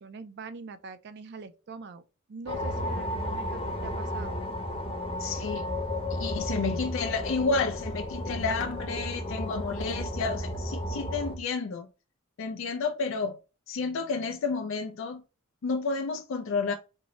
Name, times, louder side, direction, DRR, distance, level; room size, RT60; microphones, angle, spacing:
voice 1, 0.0-2.0 2.3-4.4, right 4 dB, 55° right, 0.4 m, -43 dB
sound 1, 2.5-11.4, left 1 dB, 25° left, 0.8 m, -33 dB
voice 2, 5.2-5.6 6.1-11.9 12.4-13.4 13.7-15.2 15.6-16.7, left 4 dB, 65° left, 0.4 m, -30 dB
3.7 x 2.0 x 3.0 m
head